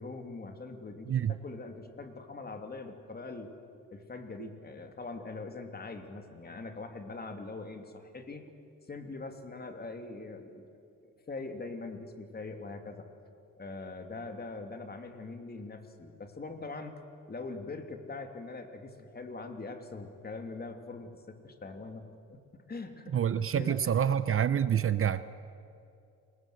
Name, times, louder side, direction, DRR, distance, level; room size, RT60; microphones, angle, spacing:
voice 1, 0.0-3.5 3.9-8.5 8.8-10.7 11.0-13.1 13.6-17.0 17.3-23.9, left 3 dB, 30° left, 6 dB, 2.9 m, -42 dB
voice 2, 23.1-25.2, right 9 dB, 45° right, 14 dB, 0.9 m, -27 dB
29.5 x 20.5 x 7.9 m, 2.5 s
cardioid pair, 90°, 30 cm